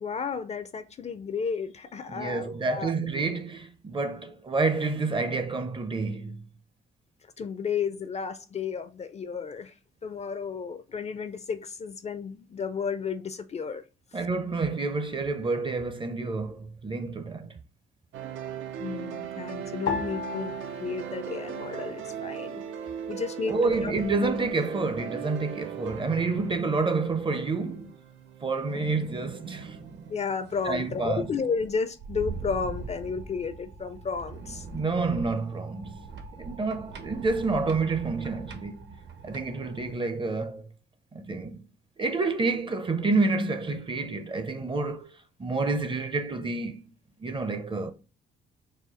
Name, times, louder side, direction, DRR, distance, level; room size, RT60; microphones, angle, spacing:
voice 1, 0.0-2.9 7.4-9.7 10.0-13.8 18.8-22.6 23.1-23.9 30.1-34.7, left 5 dB, 35° left, 0.4 m, -32 dB
voice 2, 2.1-6.5 14.1-17.6 23.5-28.0 28.4-29.8 30.7-31.2 34.7-36.1 36.3-39.0 39.2-40.7 41.1-41.6 42.0-45.1 45.4-46.8 47.2-47.9, right 3 dB, 25° right, 0.5 m, -29 dB
sound 1, 18.1-30.2, right 9 dB, 75° right, 0.5 m, -39 dB
sound 2, 19.9-22.4 22.6-23.6 24.2-24.6, left 6 dB, 90° left, 0.6 m, -37 dB
sound 3, 28.7-39.9, right 4 dB, 60° right, 0.8 m, -42 dB
4.1 x 2.3 x 3.7 m
cardioid pair, 90°, 20 cm